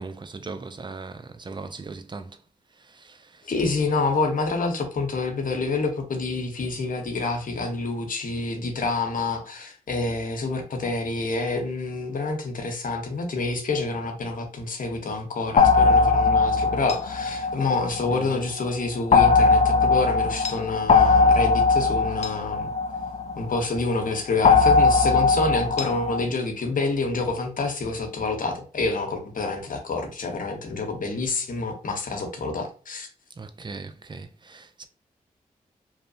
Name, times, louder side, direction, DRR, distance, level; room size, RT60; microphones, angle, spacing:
voice 1, 0.0-2.3 18.1-18.2 33.4-34.9, right 4 dB, 30° right, 0.4 m, -38 dB
voice 2, 3.4-22.7 23.4-33.1, left 3 dB, 60° left, 0.8 m, -27 dB
sound 1, 15.6-18.3 19.1-23.7 24.4-26.2, left 4 dB, 45° left, 0.4 m, -19 dB
2.7 x 2.0 x 2.6 m
supercardioid pair, 40°, 16 cm